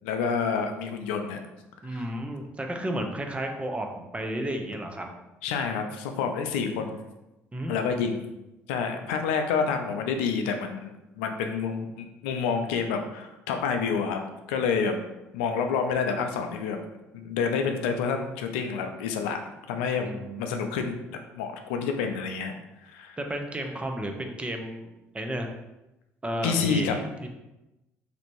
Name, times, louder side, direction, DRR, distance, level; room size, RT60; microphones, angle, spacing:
voice 1, 0.0-1.4 1.9-2.1 5.4-7.0 7.7-8.3 8.7-10.9 11.2-14.2 14.5-15.0 15.3-16.8 17.1-19.4 19.7-20.1 20.4-21.0 21.3-22.5 22.8-23.2 26.4-27.0, left 6 dB, 90° left, 5 dB, 0.4 m, -28 dB
voice 2, 1.8-3.9 4.1-5.1 7.5-7.8 20.0-20.8 23.2-24.9 25.1-25.5 26.2-27.3, right 1 dB, 20° right, 3 dB, 0.6 m, -33 dB
3.3 x 2.5 x 3.0 m, 0.97 s
supercardioid pair, 65°, 6 cm